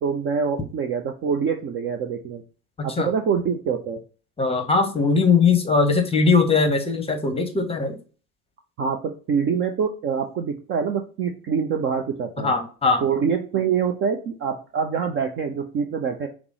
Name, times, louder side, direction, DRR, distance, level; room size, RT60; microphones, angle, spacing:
voice 1, 0.0-2.4 2.8-4.0 8.8-12.5 13.0-16.3, right 6 dB, 30° right, 6 dB, 0.4 m, -25 dB
voice 2, 4.4-7.9 12.4-13.0, left 4 dB, 15° left, 6 dB, 0.8 m, -20 dB
5.0 x 2.0 x 4.7 m, 0.38 s
hypercardioid pair, 75°, 45 cm